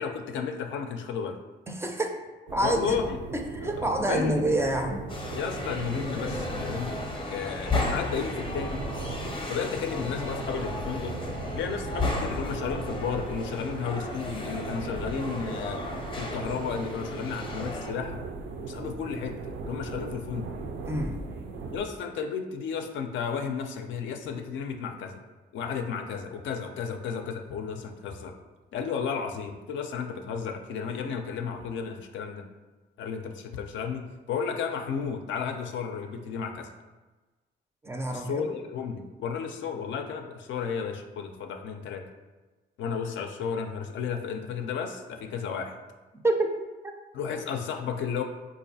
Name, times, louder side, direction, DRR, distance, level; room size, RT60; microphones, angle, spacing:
voice 1, 0.0-1.4 2.6-3.2 4.0-4.4 5.3-6.9 7.3-8.8 9.5-11.2 11.5-15.9 16.2-18.2 18.7-20.5 21.7-25.2 25.5-28.3 28.7-32.4 33.0-36.7 38.1-42.0 42.8-45.8 47.1-48.2, left 6 dB, 70° left, 5 dB, 0.4 m, -33 dB
voice 2, 1.7-2.1 2.5-3.0 3.3-5.1 20.9-21.2 37.8-38.5 46.1-46.5 46.8-46.9, right 1 dB, 15° right, 3 dB, 0.4 m, -27 dB
sound 1, 2.5-21.8, right 3 dB, 75° right, 0.4 m, -38 dB
sound 2, 5.1-17.9, left 2 dB, 25° left, 0.6 m, -34 dB
3.9 x 2.5 x 2.7 m, 1.2 s
cardioid pair, 90°, 20 cm